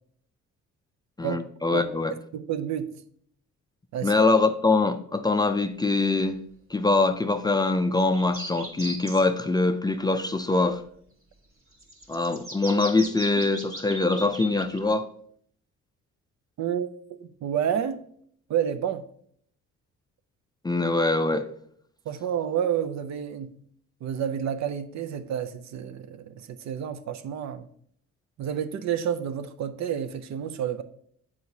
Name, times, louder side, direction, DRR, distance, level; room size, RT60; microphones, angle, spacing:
voice 1, 1.2-2.1 4.0-6.4 6.7-10.8 12.1-15.1 20.6-21.5, left 3 dB, 15° left, 0.4 m, -23 dB
voice 2, 2.3-3.0 3.9-4.1 16.6-16.9 17.2-18.0 18.5-19.1 22.1-23.6 24.0-27.7 28.4-30.8, right 9 dB, 65° right, 0.5 m, -29 dB
sound 1, 8.0-9.2 11.7-14.8, right 1 dB, 45° right, 1.3 m, -38 dB
7.6 x 4.7 x 2.7 m
cardioid pair, 90°, 30 cm